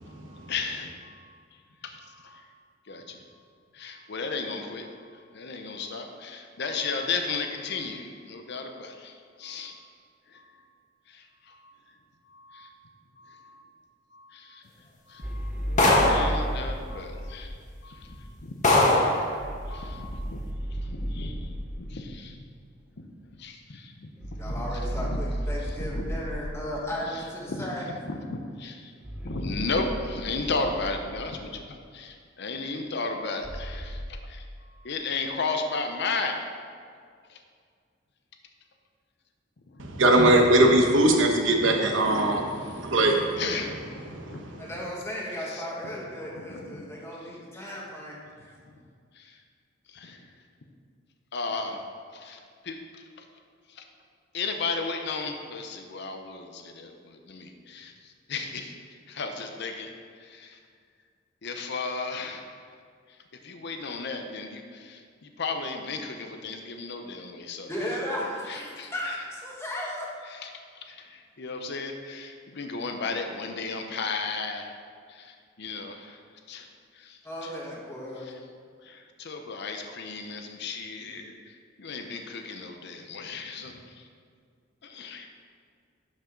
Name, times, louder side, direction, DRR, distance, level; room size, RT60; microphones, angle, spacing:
voice 1, 0.1-1.4 1.8-2.4 2.9-3.3 3.7-9.9 10.3-10.6 11.1-11.8 12.3-12.7 13.2-13.6 14.1-14.6 15.1-17.6 17.8-19.3 19.7-20.4 20.7-22.4 23.4-25.2 25.8-26.1 27.1-36.4 37.3-37.4 39.7-39.8 43.4-43.8 44.3-44.4 45.4-45.9 46.3-46.9 47.2-47.3 49.1-49.4 49.9-50.3 51.3-51.9 52.1-52.4 52.6-53.2 53.7-53.8 54.3-59.9 60.2-60.6 61.4-62.5 63.1-63.2 63.4-67.7 68.2-69.2 70.3-74.7 75.1-76.2 76.5-76.7 76.9-77.5 78.2-78.4 78.8-84.1 84.8-85.3, left 4 dB, 60° left, 5 dB, 0.7 m, -35 dB
sound 1, 15.2-17.5 19.4-21.9 24.2-26.8 29.0-31.6 33.4-34.1, equal, 10° right, 0.5 m, -34 dB
sound 2, 15.8-16.4 17.4-17.5 18.0-18.1 18.6-19.2, left 2 dB, 40° left, 1.3 m, -19 dB
voice 2, 24.4-27.9 44.6-48.2 67.7-70.1 77.2-78.2, equal, 15° left, -4 dB, 1.5 m, -35 dB
voice 3, 39.8-43.4 44.1-44.5, right 1 dB, 75° right, 2 dB, 1.0 m, -21 dB
11.5 x 5.3 x 3.9 m, 2.1 s
head